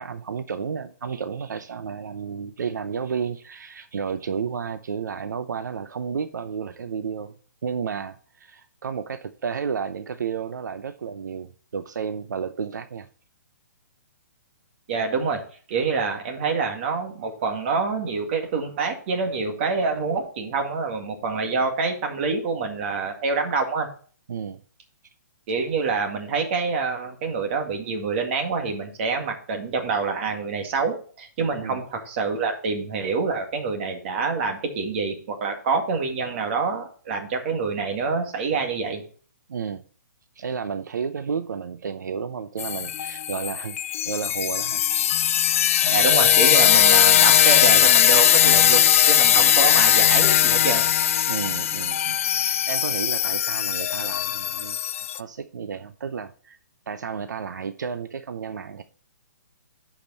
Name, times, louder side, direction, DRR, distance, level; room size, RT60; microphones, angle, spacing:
voice 1, 0.0-7.3 7.6-13.1 24.3-24.6 31.6-31.8 39.5-39.8 40.4-43.8 44.0-45.0 45.8-46.1 46.6-46.8 49.3-49.5 51.3-56.6 56.9-58.8, right 6 dB, 80° right, 0.6 m, -32 dB
voice 2, 14.9-15.4 15.7-23.9 25.5-39.0 45.9-50.8, right 4 dB, 40° right, 2.0 m, -26 dB
sound 1, 42.6-55.2, left 10 dB, 50° left, 0.3 m, -19 dB
10.5 x 5.1 x 4.0 m
hypercardioid pair, 155°, 9 cm